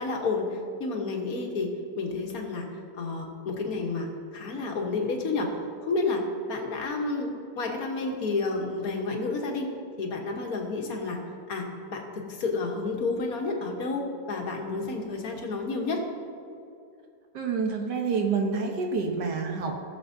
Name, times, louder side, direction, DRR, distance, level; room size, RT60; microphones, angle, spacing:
voice 1, 0.0-2.7 3.0-5.6 5.8-9.7 10.0-11.2 11.5-16.0, left 3 dB, 60° left, 1 dB, 1.6 m, -30 dB
voice 2, 17.3-19.9, right 4 dB, 75° right, 3 dB, 1.7 m, -28 dB
16.5 x 7.3 x 2.7 m, 2.6 s
omnidirectional pair, 1.9 m